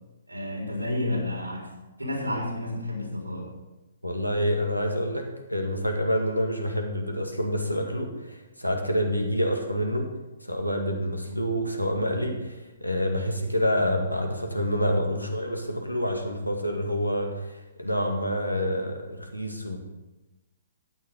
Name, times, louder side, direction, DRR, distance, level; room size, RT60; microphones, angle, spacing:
voice 1, 0.3-1.7 2.0-3.5, left 1 dB, 80° right, -1 dB, 4.1 m, -30 dB
voice 2, 4.0-10.1 10.4-19.8, equal, 90° left, 3 dB, 1.9 m, -27 dB
13.0 x 9.5 x 3.8 m, 1.0 s
figure-of-eight pair, 125°, 0 cm